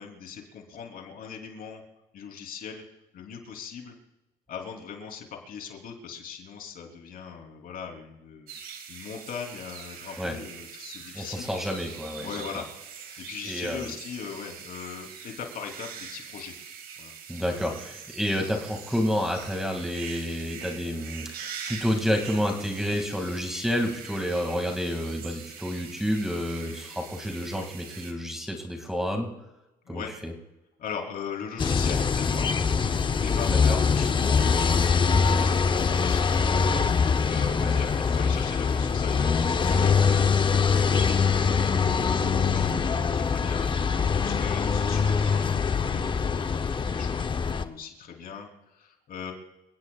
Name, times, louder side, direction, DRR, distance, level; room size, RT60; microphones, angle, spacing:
voice 1, 0.0-1.8 2.1-2.8 3.1-3.9 4.5-8.6 8.9-11.5 12.2-12.7 13.2-16.5 17.0-17.1 26.6-26.8 29.8-30.1 30.8-39.9 40.6-43.7 44.1-49.3, left 6 dB, 60° left, 2 dB, 3.5 m, -40 dB
sound 1, 8.5-28.1, right 7 dB, 60° right, 2.6 m, -43 dB
voice 2, 11.1-12.6 13.4-13.9 17.3-29.3 29.9-30.3 33.5-33.6 37.6-37.7, equal, ahead, 3 dB, 2.3 m, -29 dB
sound 2, 31.6-47.6, left 5 dB, 30° left, 0.8 m, -23 dB
27.5 x 17.0 x 2.4 m, 0.97 s
cardioid pair, 110°, 17 cm